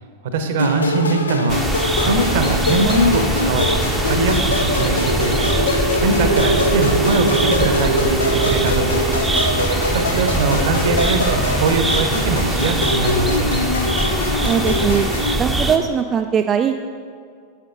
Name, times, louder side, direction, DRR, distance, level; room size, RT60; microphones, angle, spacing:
voice 1, 0.3-1.7 2.0-5.5 6.0-9.1 9.9-13.6, right 3 dB, 55° right, 6 dB, 0.8 m, -21 dB
sound 1, 0.6-15.3, left 3 dB, 75° left, 0.4 m, -24 dB
sound 2, 1.5-15.8, right 1 dB, 5° right, 0.7 m, -22 dB
sound 3, 3.9-12.0, right 3 dB, 75° right, 0.6 m, -25 dB
voice 2, 14.5-15.1 15.4-16.7, right 8 dB, 25° right, 5 dB, 0.3 m, -20 dB
8.2 x 7.3 x 3.9 m, 2.2 s
figure-of-eight pair, 90°, 0 cm